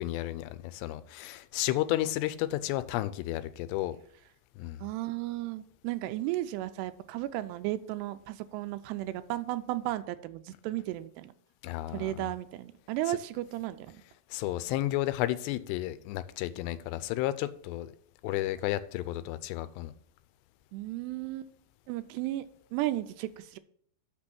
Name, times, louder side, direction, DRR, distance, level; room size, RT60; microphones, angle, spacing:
voice 1, 0.0-4.0 4.6-4.8 11.6-12.2 14.3-17.9 18.2-19.9, left 15 dB, 85° left, 14 dB, 2.7 m, -32 dB
voice 2, 4.8-11.3 11.9-14.0 20.7-21.5 21.9-23.6, right 15 dB, 85° right, 11 dB, 2.6 m, -34 dB
6.5 x 6.1 x 6.0 m, 0.63 s
omnidirectional pair, 4.9 m